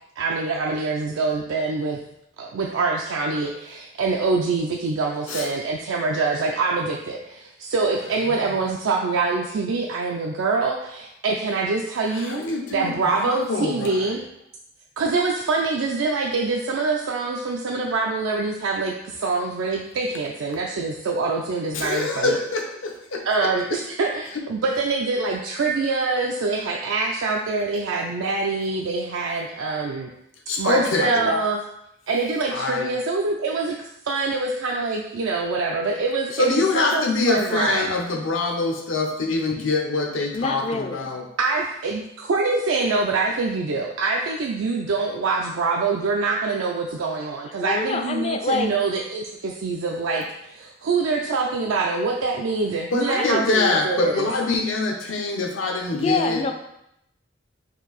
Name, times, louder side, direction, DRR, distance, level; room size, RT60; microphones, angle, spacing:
voice 1, 0.2-2.0 2.4-12.4 12.7-14.2 15.0-22.4 23.2-30.1 30.6-31.6 32.1-38.0 41.4-53.5 53.8-54.3, right 3 dB, 85° right, 0 dB, 0.4 m, -25 dB
voice 2, 12.1-14.0 21.7-23.8 30.5-31.3 32.5-32.9 36.3-41.2 52.9-56.4, left 3 dB, 85° left, 2 dB, 0.8 m, -25 dB
voice 3, 31.0-31.5 40.3-41.1 47.6-48.7 53.1-53.8 55.9-56.5, left 4 dB, 30° left, 6 dB, 0.4 m, -26 dB
4.4 x 2.7 x 4.0 m, 0.80 s
head